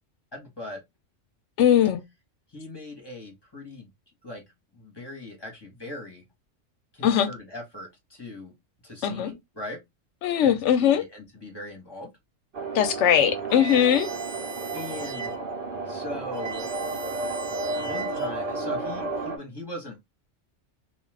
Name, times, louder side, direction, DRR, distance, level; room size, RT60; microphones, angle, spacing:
voice 1, 0.3-0.8 2.5-3.9 4.2-4.4 4.7-6.2 6.9-8.5 8.8-9.8 10.4-12.1 14.7-15.4 15.9-16.7 17.8-20.0, left 2 dB, 20° left, 1.0 m, -40 dB
voice 2, 1.6-2.0 7.0-7.3 9.0-9.3 10.2-11.0 12.7-14.1, left 9 dB, 70° left, 0.9 m, -20 dB
sound 1, 12.5-19.4, right 3 dB, 50° right, 0.9 m, -32 dB
sound 2, 13.5-15.5 15.9-16.0 16.2-18.6, right 5 dB, 85° right, 1.1 m, -40 dB
2.4 x 2.4 x 3.2 m
omnidirectional pair, 1.3 m